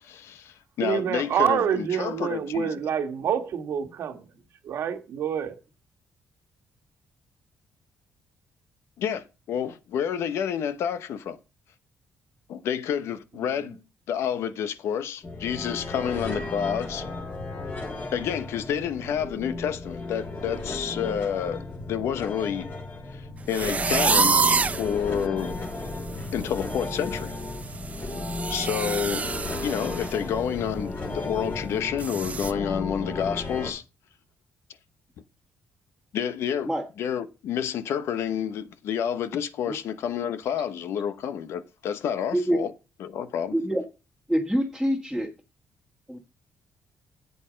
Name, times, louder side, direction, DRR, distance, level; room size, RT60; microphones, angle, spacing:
voice 1, 0.0-2.7 9.0-11.4 12.5-13.8 14.1-17.1 18.1-21.6 21.9-22.7 23.1-24.4 24.8-25.5 26.3-27.3 28.0-28.1 28.5-29.3 29.6-33.8 36.1-36.7 37.0-42.7 43.0-43.5, left 8 dB, 80° left, 0.9 m, -29 dB
voice 2, 0.8-4.3 4.6-5.5 13.4-13.5, right 8 dB, 70° right, 1.6 m, -27 dB
sound 1, 15.2-33.7, left 2 dB, 40° left, 3.0 m, -34 dB
sound 2, 23.5-24.9 25.4-25.5 25.9-26.2 26.4-30.1 30.5-30.6 31.1-31.2 32.0-32.5, right 4 dB, 30° right, 0.8 m, -26 dB
voice 3, 43.5-43.8 44.3-45.3 46.1-46.2, equal, 5° left, 1.7 m, -25 dB
8.2 x 8.0 x 5.1 m
cardioid pair, 95°, 4 cm